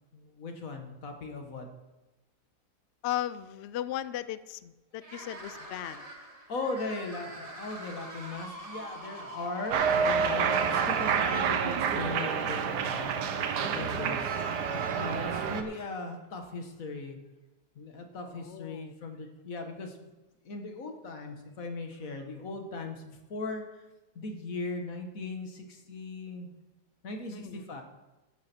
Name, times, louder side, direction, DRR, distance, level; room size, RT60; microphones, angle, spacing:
voice 1, 0.1-1.7 6.5-13.2 13.6-14.4 15.0-17.2 17.8-20.1 20.4-23.6 24.2-26.5 27.0-27.8, left 3 dB, 55° left, 4 dB, 1.8 m, -38 dB
voice 2, 3.0-6.1 18.3-18.9 27.3-27.6, left 12 dB, 80° left, 15 dB, 0.6 m, -36 dB
sound 1, 5.0-16.3, right 1 dB, 20° right, 1.6 m, -46 dB
Cheering, 9.7-15.6, right 6 dB, 85° right, 1.5 m, -28 dB
13.5 x 10.5 x 4.4 m, 1.1 s
omnidirectional pair, 1.7 m